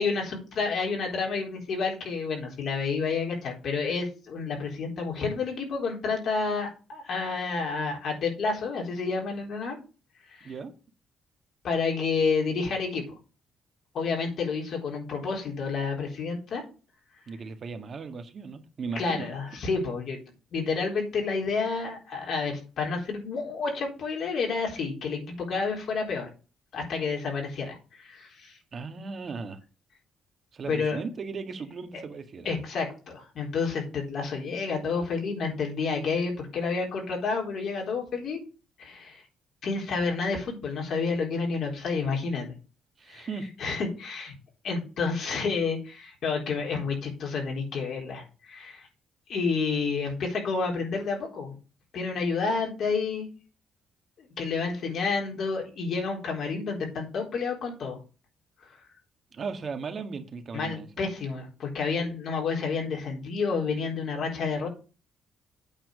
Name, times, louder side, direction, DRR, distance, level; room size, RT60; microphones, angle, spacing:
voice 1, 0.0-9.8 10.3-10.5 11.6-13.1 13.9-16.6 18.9-20.2 20.5-26.3 26.7-28.6 30.7-31.0 32.4-38.4 38.8-39.2 39.6-42.5 43.1-43.3 43.6-44.3 44.6-48.8 49.3-51.5 51.9-53.3 54.2-58.0 58.6-58.7 60.5-64.7, left 4 dB, 65° left, 4.1 m, -30 dB
voice 2, 10.4-10.7 17.3-19.3 28.7-29.6 30.5-32.5 43.0-43.5 59.3-61.1, right 4 dB, 50° right, 1.8 m, -37 dB
8.8 x 4.5 x 7.3 m
cardioid pair, 90°, 0 cm